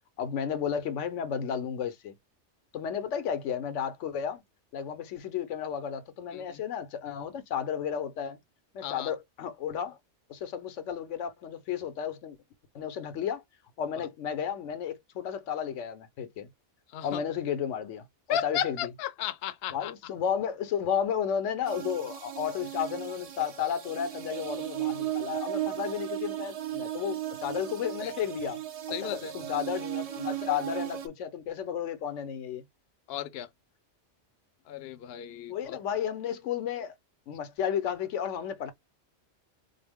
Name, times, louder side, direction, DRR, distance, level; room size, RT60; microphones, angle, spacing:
voice 1, 0.2-2.1 2.7-4.4 4.7-8.4 8.7-10.0 10.3-12.4 12.7-13.4 13.8-16.5 17.0-18.8 19.7-28.6 29.0-32.6 35.5-36.9 37.3-38.7, left 8 dB, 85° left, 1.0 m, -33 dB
voice 2, 18.3-19.9 28.0-28.1 28.9-29.3 33.1-33.5 34.7-35.8, left 10 dB, 65° left, 0.7 m, -34 dB
sound 1, 21.7-31.1, right 13 dB, 50° right, 0.5 m, -36 dB
4.1 x 2.0 x 3.5 m
omnidirectional pair, 1.2 m